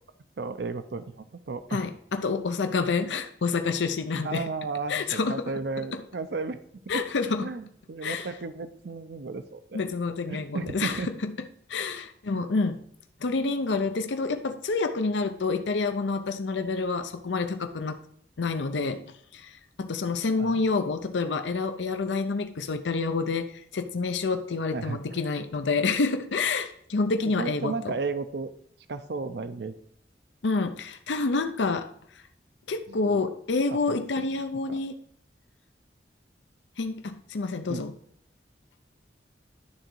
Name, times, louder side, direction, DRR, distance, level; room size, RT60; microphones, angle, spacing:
voice 1, 0.4-1.9 4.2-6.6 6.9-7.0 7.4-9.8 10.3-11.1 12.3-12.4 20.4-20.6 24.7-25.0 27.4-28.5 28.9-29.8 32.9-33.2 33.9-34.0 34.7-34.8 37.7-37.8, right 4 dB, 70° right, 10 dB, 0.5 m, -34 dB
voice 2, 1.7-4.5 4.9-5.5 5.9-6.0 6.9-7.5 8.0-8.3 9.7-11.3 11.7-12.8 13.2-18.0 18.4-27.9 30.4-31.9 32.7-35.0 36.8-37.9, left 4 dB, 90° left, 8 dB, 0.6 m, -28 dB
11.5 x 3.9 x 4.5 m, 0.68 s
head